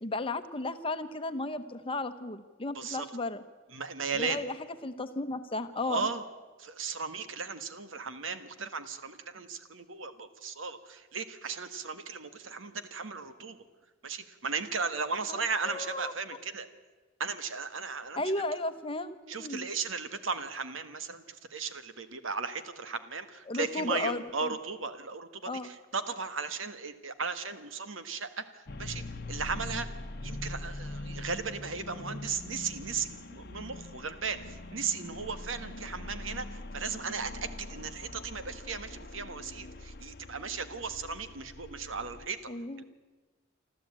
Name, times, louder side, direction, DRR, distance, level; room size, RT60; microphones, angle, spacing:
voice 1, 0.0-3.4 4.2-4.5 4.8-6.1 15.3-16.1 18.2-19.6 23.5-24.5 25.5-25.7 42.5-42.8, left 2 dB, 25° left, 10 dB, 1.0 m, -34 dB
voice 2, 2.7-3.1 3.7-4.4 5.8-6.2 6.6-13.6 14.0-16.7 17.2-18.2 19.3-29.0 29.3-29.9 30.2-42.4 42.8-42.9, right 5 dB, 75° right, 10 dB, 1.5 m, -36 dB
sound 1, 28.7-42.3, left 2 dB, 50° left, 1.0 m, -43 dB
25.0 x 13.5 x 8.9 m, 1.3 s
head